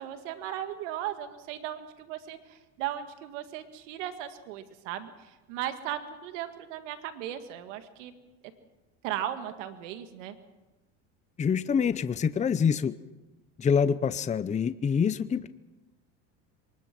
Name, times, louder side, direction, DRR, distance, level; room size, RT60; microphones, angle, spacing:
voice 1, 0.0-8.1 9.0-10.4, right 11 dB, 85° right, 8 dB, 2.0 m, -37 dB
voice 2, 11.4-12.9 13.6-15.5, left 6 dB, 20° left, 13 dB, 0.7 m, -26 dB
24.0 x 20.5 x 6.1 m, 1.1 s
supercardioid pair, 110°, 36 cm